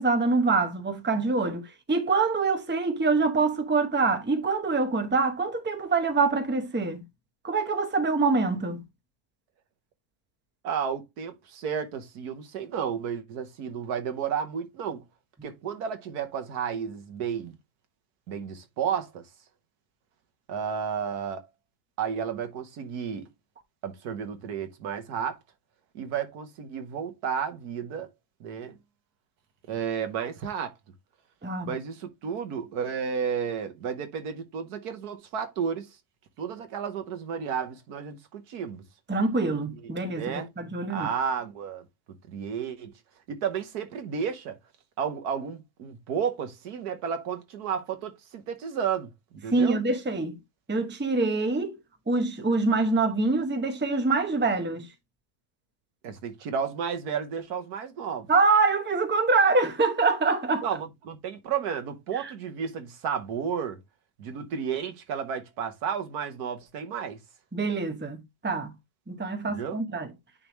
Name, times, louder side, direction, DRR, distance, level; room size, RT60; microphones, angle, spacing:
voice 1, 0.0-7.0 7.4-8.8 31.4-31.7 39.1-41.1 49.5-50.4 50.7-51.8 52.1-54.9 58.3-60.6 62.1-62.3 67.5-68.7 69.1-70.1, right 3 dB, 10° right, 0.6 m, -25 dB
voice 2, 10.6-15.0 15.4-17.6 18.3-19.2 20.5-21.4 22.0-23.3 23.8-25.4 25.9-28.1 28.4-28.8 29.7-30.7 31.6-35.9 36.4-38.8 39.8-40.5 40.9-41.8 42.3-42.9 43.3-44.6 45.0-49.8 56.0-58.3 60.6-63.8 64.2-67.2 69.5-69.8, right 7 dB, 80° right, 1.6 m, -32 dB
9.6 x 3.4 x 3.0 m
omnidirectional pair, 1.7 m